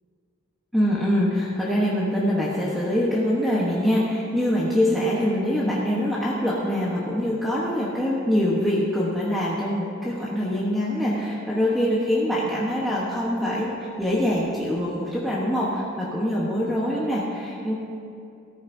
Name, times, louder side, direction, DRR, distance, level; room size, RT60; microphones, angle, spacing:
voice 1, 0.7-13.7 14.0-17.7, equal, ahead, -7 dB, 1.1 m, -24 dB
14.5 x 13.5 x 2.7 m, 2.6 s
head